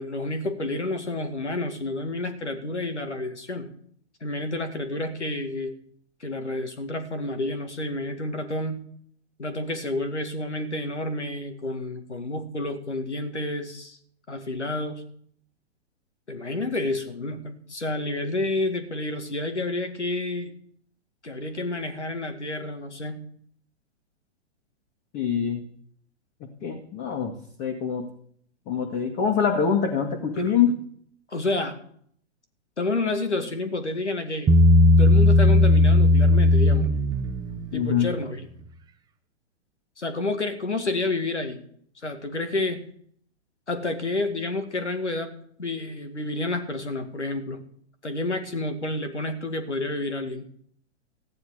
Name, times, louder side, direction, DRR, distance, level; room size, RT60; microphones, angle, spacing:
voice 1, 0.0-3.7 4.2-5.8 6.2-8.9 9.4-14.0 14.3-15.0 16.3-20.5 21.2-23.2 30.3-30.8 31.3-31.8 32.8-34.5 35.0-36.9 37.7-38.5 40.0-41.6 42.0-42.8 43.7-45.3 45.6-47.6 48.0-50.5, left 2 dB, 85° left, 7 dB, 2.1 m, -29 dB
voice 2, 25.1-25.7 26.4-27.3 27.6-28.1 28.7-30.8 37.7-38.1, left 7 dB, 30° left, 3 dB, 2.0 m, -24 dB
Bass guitar, 34.5-37.9, left 1 dB, 10° right, 0.8 m, -17 dB
14.5 x 10.0 x 5.0 m, 0.64 s
figure-of-eight pair, 115°, 34 cm